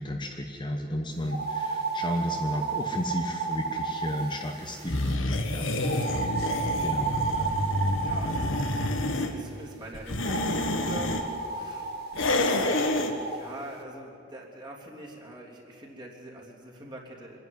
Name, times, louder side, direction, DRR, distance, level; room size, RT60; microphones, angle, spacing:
voice 1, 0.0-6.3 6.8-7.5, equal, 25° left, 2 dB, 1.1 m, -33 dB
sound 1, 1.3-5.2 5.8-9.1 10.2-13.4, right 4 dB, 50° right, 1.8 m, -32 dB
sound 2, 4.9-9.3 9.9-11.2 12.1-13.1, left 1 dB, 70° left, 1.6 m, -28 dB
voice 2, 8.0-11.8 12.3-17.4, right 1 dB, 25° right, -3 dB, 3.1 m, -44 dB
25.0 x 10.5 x 9.6 m, 2.7 s
head